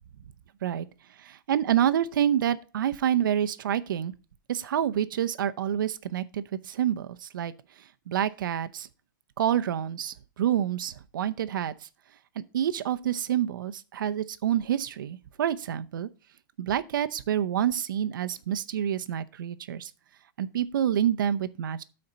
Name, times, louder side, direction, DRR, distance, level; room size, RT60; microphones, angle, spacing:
voice 1, 1.2-4.1 4.5-7.5 8.1-8.9 9.4-11.7 12.4-16.1 16.6-19.9 20.4-21.8, right 10 dB, 75° right, 0.7 m, -28 dB
13.0 x 4.3 x 3.9 m
supercardioid pair, 170°, 11 cm